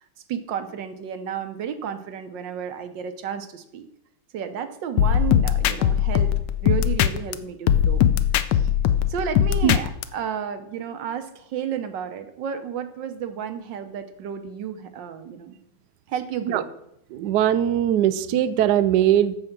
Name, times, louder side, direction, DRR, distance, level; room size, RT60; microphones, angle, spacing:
voice 1, 0.3-3.9 4.3-6.3 6.6-8.0 8.5-8.7 9.1-15.6 16.1-16.7, right 8 dB, 65° right, 9 dB, 1.5 m, -32 dB
sound 1, 5.0-7.3 7.7-10.0, left 10 dB, 70° left, 1.1 m, -20 dB
voice 2, 17.1-19.4, right 11 dB, 80° right, 12 dB, 0.9 m, -20 dB
14.5 x 4.9 x 5.9 m, 0.79 s
omnidirectional pair, 2.3 m